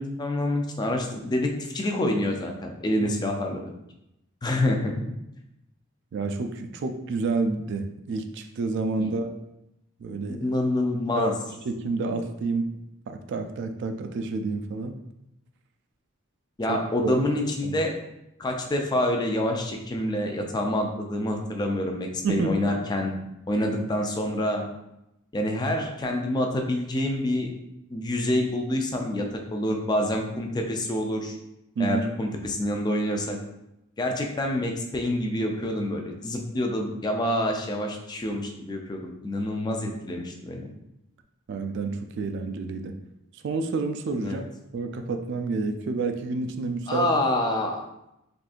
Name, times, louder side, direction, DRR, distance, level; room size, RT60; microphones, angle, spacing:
voice 1, 0.0-3.6 4.4-4.9 9.0-9.1 10.3-11.3 16.6-18.0 18.4-24.7 25.3-27.5 27.9-31.3 31.8-33.4 34.0-40.7 44.2-44.4 46.9-47.8, left 1 dB, 20° left, 2 dB, 0.3 m, -27 dB
voice 2, 6.1-9.3 10.0-10.5 11.2-11.3 11.6-12.7 13.1-14.9 16.7-17.2 17.6-17.7 22.2-22.5 31.8-32.0 41.5-42.9 43.4-44.5 44.7-47.1, right 3 dB, 55° right, 7 dB, 0.3 m, -29 dB
3.6 x 2.5 x 2.4 m, 0.87 s
head